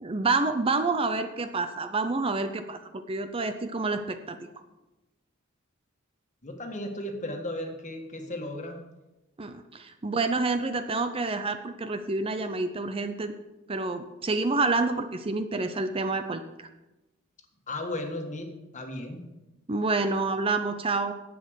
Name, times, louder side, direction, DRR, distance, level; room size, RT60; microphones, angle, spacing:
voice 1, 0.0-2.8 3.1-4.5 9.4-13.3 13.7-16.7 19.7-21.1, right 3 dB, 25° right, 9 dB, 0.5 m, -28 dB
voice 2, 6.4-8.8 17.7-19.2, left 1 dB, 35° left, 4 dB, 1.6 m, -35 dB
10.0 x 8.6 x 6.4 m, 1.0 s
head